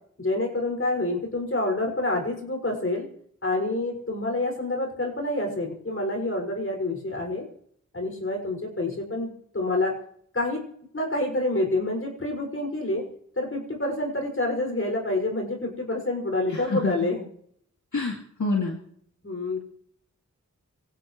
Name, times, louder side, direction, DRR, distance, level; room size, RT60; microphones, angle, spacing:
voice 1, 0.2-3.1 3.4-7.5 7.9-9.9 10.3-10.6 10.9-13.0 13.4-17.3 19.2-19.6, left 2 dB, 45° left, 1 dB, 6.5 m, -27 dB
voice 2, 16.5-16.9 17.9-18.8, left 3 dB, 75° left, -1 dB, 2.5 m, -27 dB
25.5 x 17.0 x 3.3 m, 0.65 s
wide cardioid pair, 80°, 30 cm